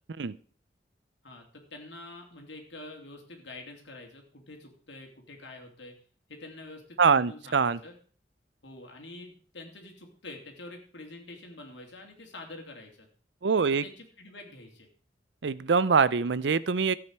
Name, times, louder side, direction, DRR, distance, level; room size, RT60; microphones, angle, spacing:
voice 1, 1.2-5.9 6.3-7.9 8.6-13.1 13.6-14.9, left 2 dB, 80° left, 2 dB, 3.0 m, -46 dB
voice 2, 7.0-7.8 13.4-13.8 15.4-16.9, right 5 dB, 75° right, 19 dB, 0.6 m, -24 dB
14.0 x 8.6 x 4.7 m, 0.42 s
head